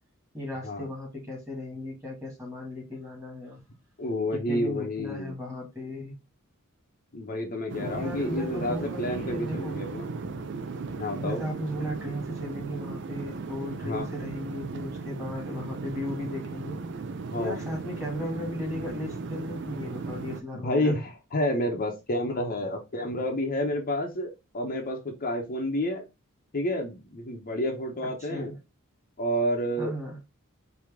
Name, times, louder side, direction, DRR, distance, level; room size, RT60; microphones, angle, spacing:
voice 1, 0.3-3.6 4.3-6.2 7.8-9.8 11.2-16.8 17.4-21.0 28.2-28.6 29.8-30.2, left 1 dB, 15° right, 2.1 m, -36 dB
voice 2, 4.0-5.3 7.1-10.1 11.0-11.4 13.8-14.1 17.3-17.6 20.6-26.0 26.5-28.5 29.2-29.9, left 1 dB, 40° left, 0.8 m, -29 dB
sound 1, 7.7-20.4, right 4 dB, 55° right, 0.5 m, -36 dB
4.7 x 2.8 x 3.5 m
head